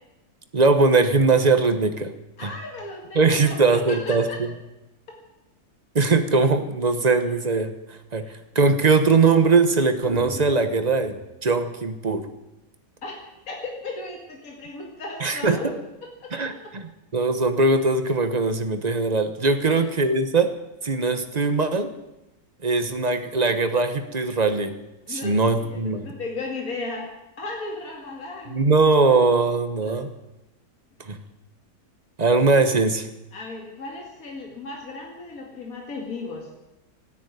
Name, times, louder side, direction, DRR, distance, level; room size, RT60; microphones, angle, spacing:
voice 1, 0.5-2.1 2.4-2.5 3.1-4.3 5.9-12.3 15.2-15.7 16.3-20.6 20.8-21.9 22.6-24.7 25.1-26.1 28.5-30.1 31.0-31.2 32.2-33.1, right 3 dB, 30° right, 8 dB, 1.1 m, -21 dB
voice 2, 2.4-4.5 5.1-5.2 8.2-8.3 13.0-13.2 13.5-15.7 16.0-16.7 19.6-19.9 21.4-21.6 25.1-27.1 27.4-28.6 29.8-30.0 33.3-36.5, left 3 dB, 60° left, 0 dB, 2.7 m, -35 dB
sound 1, 10.0-12.2, right 4 dB, 55° right, 2.8 m, -41 dB
13.5 x 10.0 x 9.7 m, 0.95 s
omnidirectional pair, 1.6 m